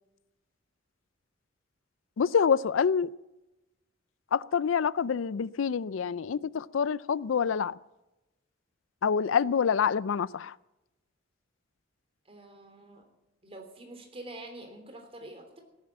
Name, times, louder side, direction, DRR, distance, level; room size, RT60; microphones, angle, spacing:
voice 1, 2.2-3.1 4.3-7.8 9.0-10.5, left 6 dB, 90° left, 0.4 m, -26 dB
voice 2, 12.2-13.0 13.4-15.6, right 1 dB, 30° right, 3.3 m, -46 dB
17.0 x 10.0 x 7.2 m
head